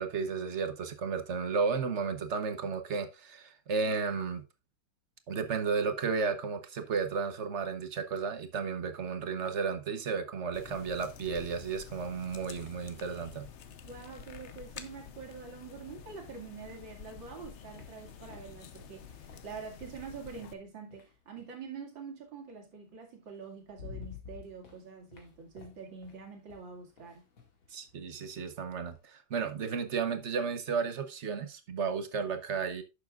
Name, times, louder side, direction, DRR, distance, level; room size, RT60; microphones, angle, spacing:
voice 1, 0.0-4.4 5.3-13.5 27.7-32.8, right 5 dB, 50° right, 0.9 m, -33 dB
sound 1, 10.5-20.5, left 7 dB, 60° left, 0.7 m, -49 dB
voice 2, 13.8-27.3, right 5 dB, 75° right, 3.0 m, -46 dB
sound 2, 17.5-21.6 22.9-23.0 23.4-29.1, left 6 dB, 85° left, 2.9 m, -52 dB
11.0 x 6.9 x 2.4 m
omnidirectional pair, 2.1 m